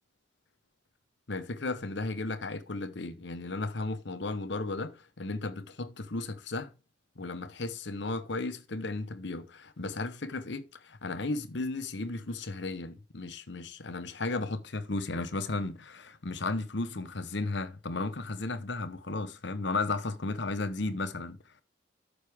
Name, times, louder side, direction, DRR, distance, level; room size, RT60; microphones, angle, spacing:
voice 1, 1.3-6.7 7.2-21.4, left 3 dB, 65° left, 1.0 m, -34 dB
9.5 x 6.7 x 3.5 m
head